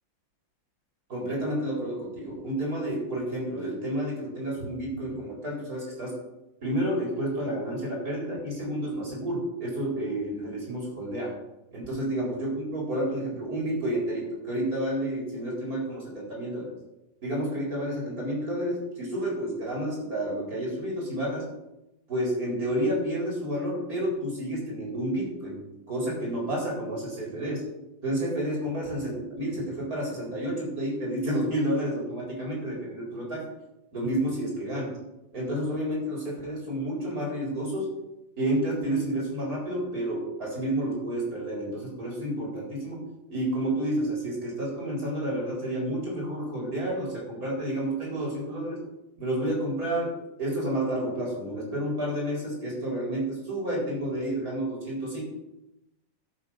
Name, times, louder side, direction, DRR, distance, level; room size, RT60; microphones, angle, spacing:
voice 1, 1.1-6.1 6.6-11.3 11.7-16.7 17.2-21.5 22.1-25.6 25.9-27.6 28.0-33.4 33.9-34.9 35.3-37.9 38.4-43.0 43.3-48.8 49.2-55.2, right 1 dB, 50° right, -3 dB, 4.7 m, -30 dB
12.5 x 6.8 x 5.8 m, 0.90 s
omnidirectional pair, 2.1 m